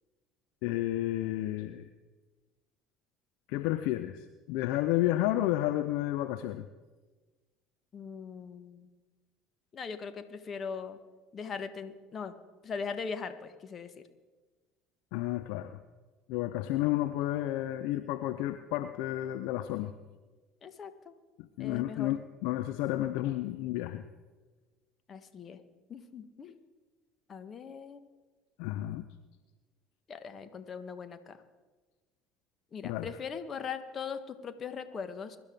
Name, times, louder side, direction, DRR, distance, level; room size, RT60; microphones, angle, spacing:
voice 1, 0.6-1.9 3.5-6.7 15.1-15.8 16.3-19.9 21.4-24.0 28.6-29.0 32.8-33.1, left 15 dB, 60° left, 11 dB, 0.6 m, -31 dB
voice 2, 7.9-8.9 9.7-11.0 11.3-12.3 12.6-13.9 20.6-21.1 21.6-22.2 25.1-25.6 25.9-26.6 27.3-28.1 30.1-31.4 32.7-35.4, left 6 dB, 35° left, 10 dB, 1.4 m, -40 dB
23.0 x 12.0 x 3.7 m, 1.3 s
figure-of-eight pair, 60°, 0 cm